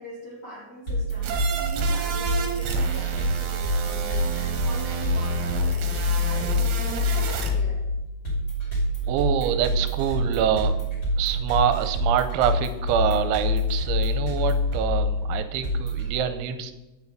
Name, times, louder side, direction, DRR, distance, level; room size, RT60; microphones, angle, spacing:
voice 1, 0.0-7.8, right 1 dB, 85° left, -4 dB, 0.9 m, -42 dB
sound 1, 0.9-16.1, left 1 dB, 20° left, 2.8 m, -26 dB
sound 2, 1.2-7.5, right 5 dB, 70° right, 3.2 m, -32 dB
voice 2, 9.1-10.7 11.2-16.7, right 9 dB, 85° right, 9 dB, 3.0 m, -25 dB
9.5 x 5.9 x 7.7 m, 1.0 s
omnidirectional pair, 5.5 m